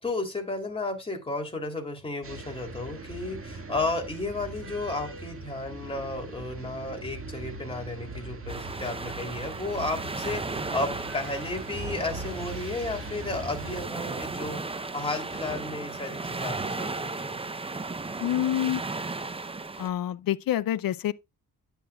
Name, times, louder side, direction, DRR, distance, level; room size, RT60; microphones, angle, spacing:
voice 1, 0.0-14.6 14.9-17.4, left 2 dB, 15° left, 3.2 m, -33 dB
sound 1, 2.2-13.9, right 2 dB, 35° right, 2.0 m, -40 dB
sound 2, 8.5-19.9, right 3 dB, 15° right, 0.7 m, -35 dB
voice 2, 18.2-18.8 19.8-21.1, left 12 dB, 65° left, 0.6 m, -27 dB
10.0 x 8.8 x 2.4 m
cardioid pair, 105°, 37 cm